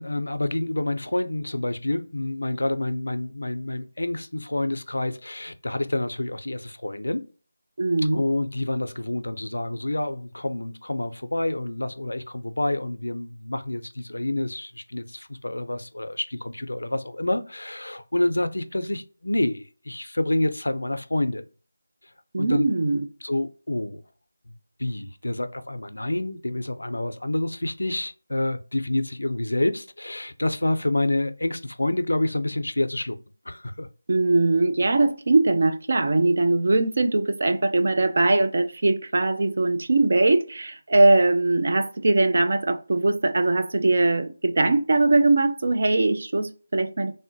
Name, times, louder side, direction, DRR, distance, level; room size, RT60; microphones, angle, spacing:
voice 1, 0.0-7.2 8.1-21.5 22.4-22.6 23.2-24.0 24.8-33.2 33.5-33.9, left 1 dB, 90° left, 0.4 m, -28 dB
voice 2, 7.8-8.2 22.3-23.1 34.1-47.1, right 2 dB, 55° right, 0.4 m, -21 dB
3.5 x 2.1 x 2.5 m
figure-of-eight pair, 165°, 0 cm